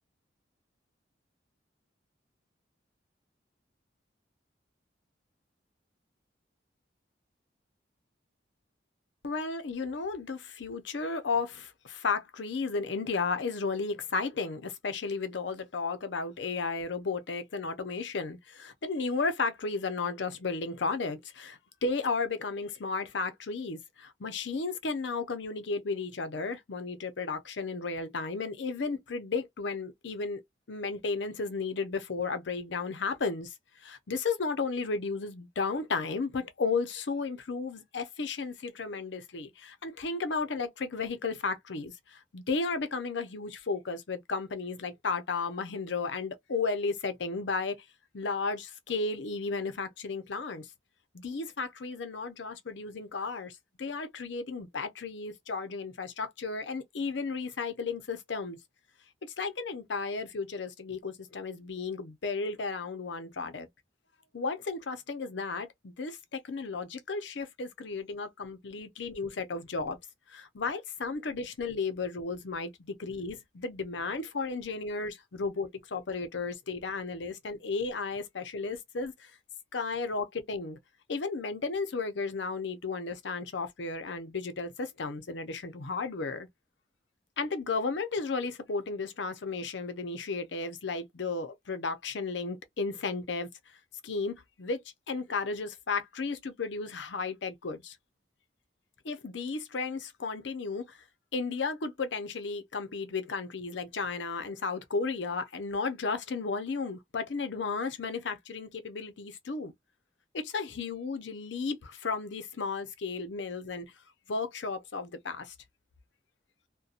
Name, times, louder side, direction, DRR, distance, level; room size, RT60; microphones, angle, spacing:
voice 1, 9.2-30.4 30.7-33.5 33.8-47.8 48.1-50.7 51.1-58.6 59.4-63.7 64.3-70.0 70.3-79.3 79.7-80.8 81.1-86.5 87.4-93.5 94.0-98.0 99.0-101.0 101.3-109.7 110.3-113.9 114.3-115.5, left 4 dB, 70° left, 0.6 m, -34 dB
2.7 x 2.2 x 2.4 m
head